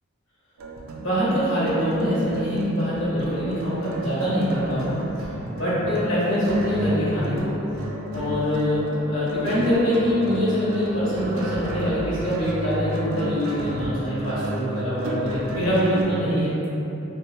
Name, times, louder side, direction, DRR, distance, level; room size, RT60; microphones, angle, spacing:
sound 1, 0.6-16.0, right 1 dB, 85° right, 0.3 m, -33 dB
voice 1, 1.0-5.0 5.5-7.6 8.1-16.7, equal, 70° left, -11 dB, 1.5 m, -24 dB
2.7 x 2.2 x 2.8 m, 2.9 s
head